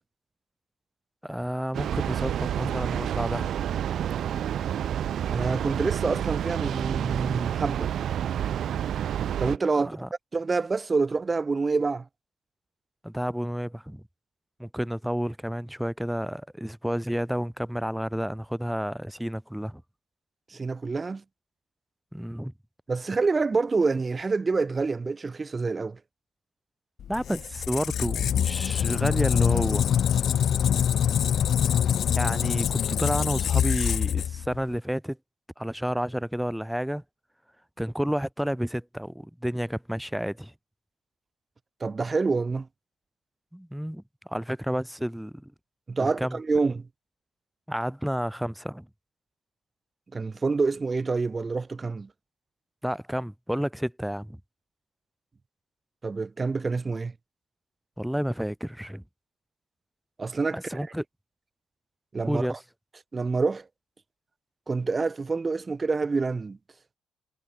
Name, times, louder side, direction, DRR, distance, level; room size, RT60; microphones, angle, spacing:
voice 1, 1.2-3.5 9.8-10.1 13.0-14.0 14.6-19.8 22.1-22.5 27.1-29.9 32.1-35.2 35.6-37.0 37.8-40.5 43.5-45.5 46.0-46.4 47.7-48.9 52.8-54.4 58.0-59.0 60.5-61.0 62.3-62.6, equal, 5° right, 5.5 m, -30 dB
Train, 1.7-9.6, right 10 dB, 65° right, 2.1 m, -29 dB
voice 2, 5.3-7.9 9.4-9.9 10.3-12.1 20.5-21.2 22.9-26.0 41.8-42.7 45.9-46.8 50.1-52.1 56.0-57.1 60.2-60.6 62.1-62.6 63.1-63.6 64.7-66.6, right 4 dB, 30° right, 4.5 m, -27 dB
Squeak, 27.0-34.7, left 9 dB, 65° left, 3.5 m, -25 dB
cardioid pair, 90°, 0 cm